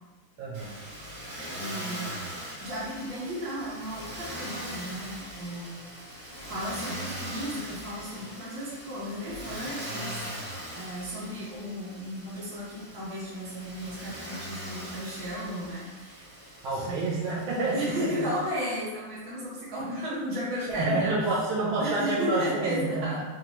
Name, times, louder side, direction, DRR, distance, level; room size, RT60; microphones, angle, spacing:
voice 1, 0.4-0.8 16.6-18.3 20.7-23.2, right 2 dB, 85° right, -5 dB, 1.6 m, -28 dB
Motor vehicle (road), 0.5-18.5, equal, 70° right, 1.8 m, -41 dB
voice 2, 1.5-2.3 2.6-5.9 6.5-10.2 10.7-16.3 16.7-17.2 17.7-21.1 21.8-23.2, equal, 50° right, -8 dB, 1.6 m, -34 dB
4.2 x 2.3 x 2.9 m, 1.2 s
omnidirectional pair, 2.3 m